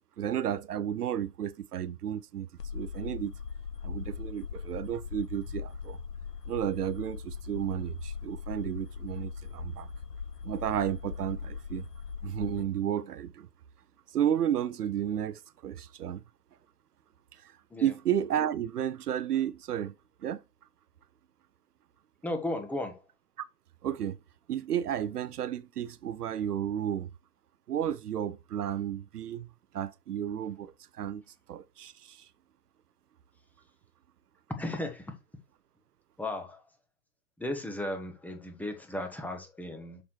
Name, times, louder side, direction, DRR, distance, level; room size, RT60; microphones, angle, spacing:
voice 1, 0.2-2.5 2.7-3.4 3.8-6.0 6.5-9.9 10.4-11.9 12.2-13.5 14.1-16.2 17.3-19.9 20.2-20.4 23.8-24.2 24.5-27.1 27.7-29.5 29.7-31.2 31.5-32.3, right 10 dB, 70° right, 0.8 m, -32 dB
sound 1, 2.6-12.6, left 6 dB, 85° left, 1.2 m, -40 dB
voice 2, 22.2-23.0 34.6-35.1 36.2-36.6 37.4-40.0, left 1 dB, 5° left, 1.2 m, -35 dB
7.0 x 6.6 x 3.1 m
hypercardioid pair, 120°, 48 cm